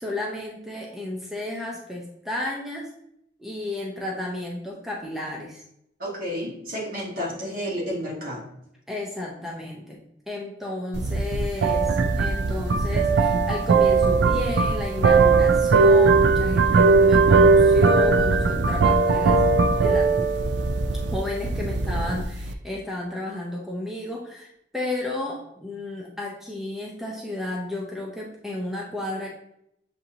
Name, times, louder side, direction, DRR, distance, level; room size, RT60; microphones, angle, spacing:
voice 1, 0.0-2.9 3.4-5.6 8.9-20.2 21.1-29.3, left 2 dB, ahead, -3 dB, 0.5 m, -32 dB
voice 2, 6.0-8.4, equal, 55° right, -4 dB, 1.5 m, -31 dB
sound 1, 10.9-22.5, right 4 dB, 75° right, 0.4 m, -19 dB
7.3 x 2.6 x 2.7 m, 0.77 s
head